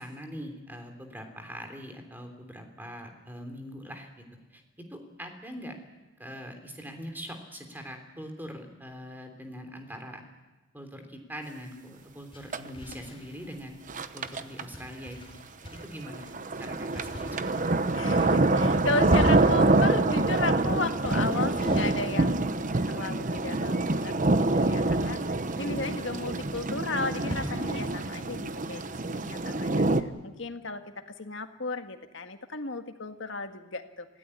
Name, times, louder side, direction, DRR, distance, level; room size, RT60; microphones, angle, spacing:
voice 1, 0.0-4.2 4.5-5.8 6.2-10.2 10.7-13.8 14.1-15.2 15.7-16.3 16.6-17.5 25.0-25.7, equal, 10° right, 5 dB, 3.2 m, -42 dB
sound 1, 12.0-30.0, equal, 25° left, 4.7 m, -41 dB
sound 2, 12.5-12.7 12.9-13.0 13.9-14.6 15.8-30.0, right 2 dB, 40° right, 0.9 m, -26 dB
voice 2, 17.9-25.2 25.6-29.8 30.2-34.1, left 3 dB, 65° left, 7 dB, 1.8 m, -34 dB
25.5 x 16.5 x 9.8 m, 1.2 s
head